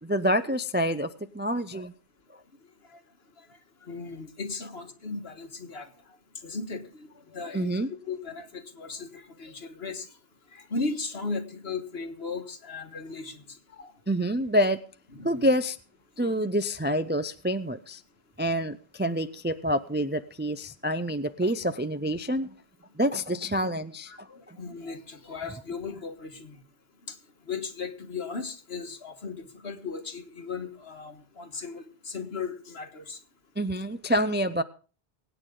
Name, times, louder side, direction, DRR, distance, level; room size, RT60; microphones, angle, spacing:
voice 1, 0.0-1.1 1.3-1.9 7.5-7.9 14.1-14.8 15.2-15.8 16.2-18.0 18.4-22.5 23.0-24.6 33.6-34.6, equal, 15° right, 11 dB, 0.3 m, -27 dB
voice 2, 3.8-5.9 6.4-7.1 7.3-10.1 10.5-13.4 13.7-13.9 15.1-15.5 24.1-26.6 27.1-27.2 27.5-33.2, left 4 dB, 70° left, 6 dB, 1.8 m, -37 dB
23.5 x 9.2 x 3.8 m, 0.38 s
omnidirectional pair, 1.1 m